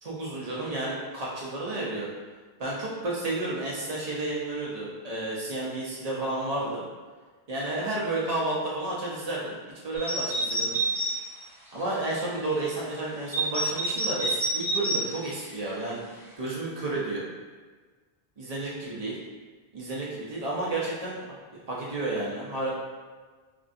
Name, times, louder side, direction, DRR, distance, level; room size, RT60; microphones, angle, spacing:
voice 1, 0.0-2.1 2.6-6.8 7.5-9.5 9.8-10.8 11.7-16.0 16.4-17.2 18.4-19.2 19.7-21.2 21.7-22.7, right 2 dB, 45° right, -5 dB, 0.7 m, -31 dB
sound 1, 9.9-11.1 11.8-11.9 13.3-15.0, right 2 dB, 5° right, 0.4 m, -27 dB
2.9 x 2.5 x 2.6 m, 1.4 s
omnidirectional pair, 1.0 m